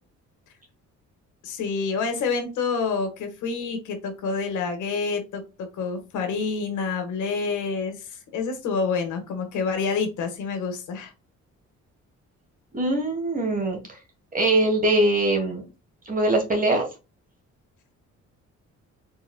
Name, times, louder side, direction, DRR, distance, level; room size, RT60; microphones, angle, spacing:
voice 1, 1.4-11.1, left 5 dB, 80° left, 5 dB, 1.5 m, -28 dB
voice 2, 12.7-13.8 14.3-15.6 16.1-16.9, right 2 dB, 25° right, 2 dB, 2.3 m, -22 dB
4.5 x 4.3 x 2.2 m, 0.28 s
cardioid pair, 90°, 30 cm